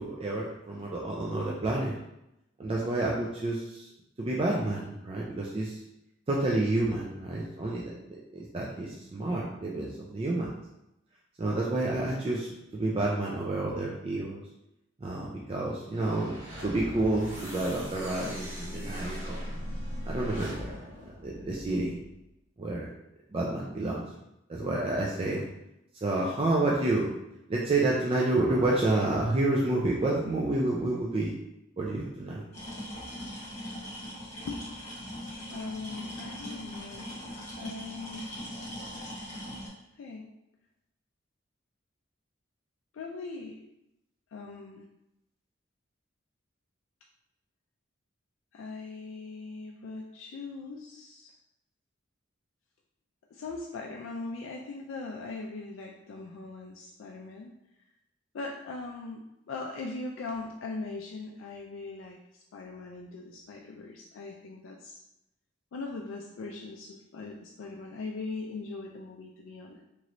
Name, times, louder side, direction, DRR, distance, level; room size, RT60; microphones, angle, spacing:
voice 1, 0.0-2.0 2.6-3.9 4.2-5.8 6.3-10.6 11.4-14.4 15.0-19.4 20.0-20.7 21.2-21.9 22.6-22.9 23.3-24.0 24.5-25.5 26.0-27.1 27.5-31.3 31.8-32.5, right 2 dB, 30° right, -4 dB, 0.3 m, -29 dB
sound 1, 15.9-22.1, equal, 85° right, 1.2 m, -40 dB
sound 2, 32.5-39.7, equal, 35° left, 1.3 m, -40 dB
voice 2, 34.5-35.0 35.5-38.3 40.0-40.3 42.9-43.6 44.3-44.9 48.5-51.3 53.3-57.5 58.3-65.0 65.7-69.8, left 3 dB, 80° left, 0 dB, 0.3 m, -40 dB
3.0 x 3.0 x 2.5 m, 0.86 s
head